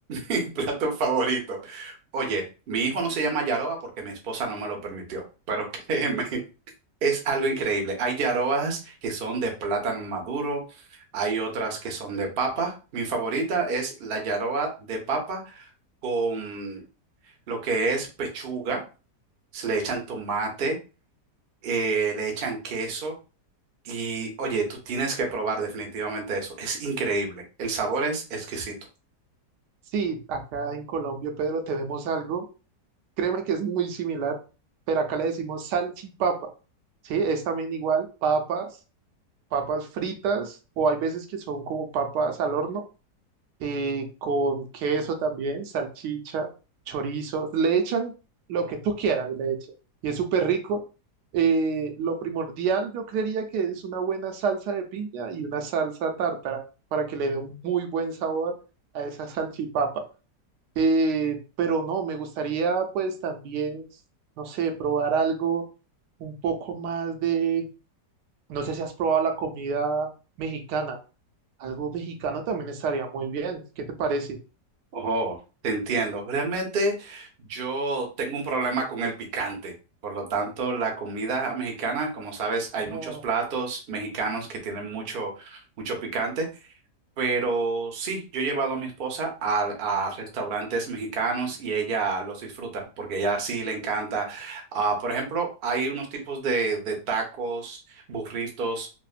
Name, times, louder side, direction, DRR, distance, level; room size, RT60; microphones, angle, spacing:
voice 1, 0.1-6.4 7.0-10.6 11.1-15.7 16.0-16.8 17.5-18.8 19.5-20.8 21.6-23.1 23.8-28.8 74.9-75.4 75.6-79.7 80.0-86.5 87.2-98.9, right 4 dB, 55° right, 2 dB, 0.6 m, -28 dB
voice 2, 29.9-32.5 33.2-34.4 34.9-36.5 37.0-38.7 39.5-42.8 43.6-46.5 46.9-48.1 48.5-49.6 50.0-50.8 51.3-56.6 56.9-58.5 58.9-60.0 60.8-63.9 64.4-65.7 66.2-67.6 68.5-70.1 70.4-71.0 71.6-74.4 82.9-83.2, right 5 dB, 80° right, 5 dB, 1.2 m, -27 dB
3.3 x 2.1 x 2.4 m, 0.33 s
omnidirectional pair, 1.8 m